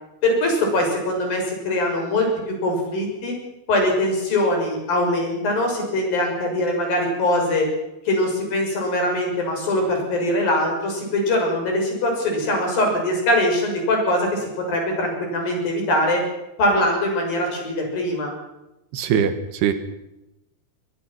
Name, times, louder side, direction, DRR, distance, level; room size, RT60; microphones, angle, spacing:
voice 1, 0.2-2.3 2.6-3.3 3.7-7.7 8.0-16.2 16.6-18.3, left 1 dB, 60° left, 2 dB, 8.3 m, -22 dB
voice 2, 18.9-19.7, right 8 dB, 75° right, 10 dB, 3.6 m, -21 dB
22.5 x 22.0 x 6.0 m, 0.93 s
omnidirectional pair, 4.8 m